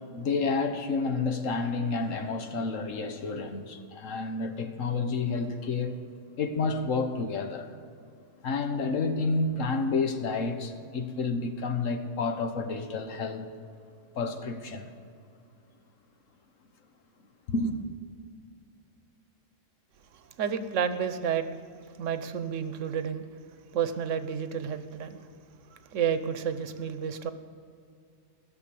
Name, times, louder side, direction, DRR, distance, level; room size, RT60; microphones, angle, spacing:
voice 1, 0.0-5.9 6.4-7.7 8.4-13.5 14.1-14.9 17.5-17.7, left 4 dB, 85° left, 6 dB, 1.4 m, -30 dB
voice 2, 20.1-21.5 21.9-23.3 23.7-25.3 25.7-27.3, right 7 dB, 75° right, 11 dB, 1.1 m, -31 dB
16.0 x 6.9 x 6.9 m, 2.3 s
omnidirectional pair, 1.3 m